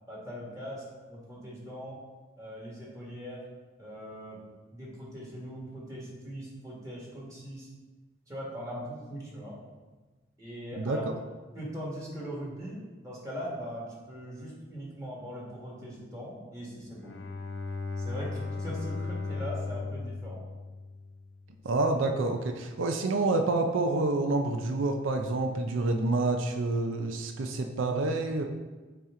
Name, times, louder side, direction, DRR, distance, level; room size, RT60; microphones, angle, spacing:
voice 1, 0.1-2.0 2.4-3.5 3.8-4.4 4.7-7.7 8.3-9.7 10.4-11.0 11.5-17.2 18.0-20.5, equal, 15° right, -5 dB, 1.6 m, -40 dB
voice 2, 10.8-11.1 21.6-28.4, right 2 dB, 85° right, 4 dB, 0.5 m, -28 dB
Bowed string instrument, 16.9-21.4, left 3 dB, 70° left, 0.7 m, -36 dB
8.7 x 2.9 x 3.7 m, 1.3 s
head